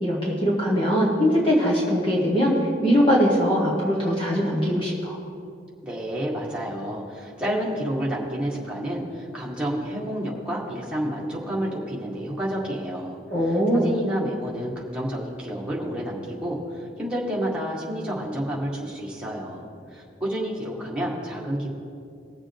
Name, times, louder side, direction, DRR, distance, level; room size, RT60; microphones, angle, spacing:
voice 1, 0.0-5.2 13.3-14.0, equal, 30° left, -4 dB, 1.5 m, -21 dB
voice 2, 5.8-13.2 13.5-21.7, equal, 5° right, -5 dB, 1.9 m, -30 dB
20.0 x 7.1 x 3.6 m, 2.5 s
head